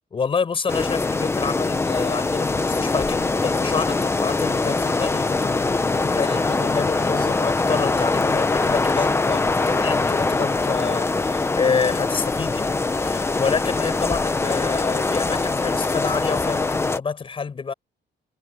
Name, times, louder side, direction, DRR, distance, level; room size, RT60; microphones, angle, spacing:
voice 1, 0.1-17.7, left 5 dB, 30° left, 5.6 m, -28 dB
sound 1, 0.7-17.0, left 3 dB, 15° left, 1.0 m, -23 dB
cardioid pair, 180°, 18 cm